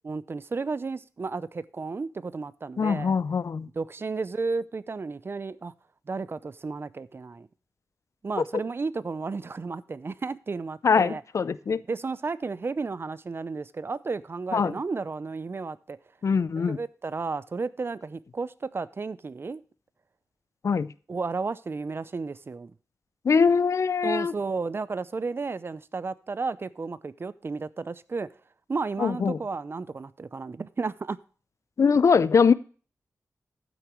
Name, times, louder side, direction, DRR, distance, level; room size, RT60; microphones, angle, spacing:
voice 1, 0.0-3.2 3.7-5.7 6.1-7.5 8.2-11.2 11.9-16.0 16.6-19.6 21.1-22.7 24.0-28.3 28.7-31.2, right 4 dB, 40° right, 0.6 m, -33 dB
voice 2, 2.8-3.7 10.8-11.8 14.5-14.7 16.2-16.8 20.6-20.9 23.2-24.3 29.0-29.4 31.8-32.5, left 5 dB, 60° left, 0.5 m, -22 dB
12.0 x 9.2 x 3.1 m
wide cardioid pair, 110°, 6 cm